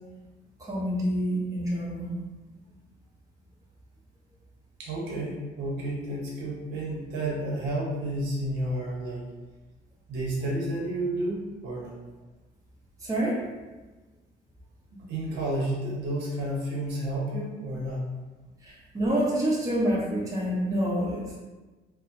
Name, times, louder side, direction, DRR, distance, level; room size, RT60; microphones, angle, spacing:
voice 1, 0.6-2.1 2.5-2.6 13.0-13.4 18.6-21.4, equal, 20° right, -6 dB, 0.9 m, -27 dB
voice 2, 4.8-9.3 10.1-12.0 15.1-18.1, right 1 dB, 90° right, -3 dB, 0.7 m, -31 dB
3.1 x 2.0 x 2.8 m, 1.2 s
cardioid pair, 110°, 17 cm